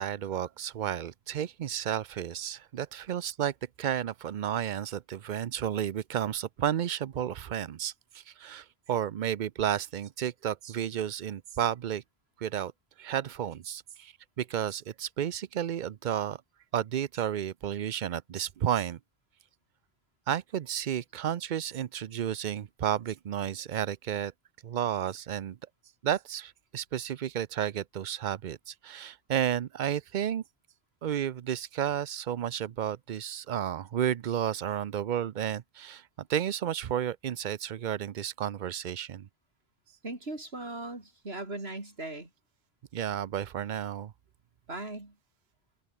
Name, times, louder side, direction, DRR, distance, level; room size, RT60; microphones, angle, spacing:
voice 1, 0.0-12.0 12.4-12.7 13.0-16.4 16.7-19.0 20.3-24.3 24.6-25.6 26.0-30.4 31.0-39.3 42.9-44.1, right 10 dB, 55° right, 0.7 m, -32 dB
voice 2, 40.0-42.3 44.7-45.1, right 2 dB, 85° right, 4.8 m, -38 dB
open air
omnidirectional pair, 1.0 m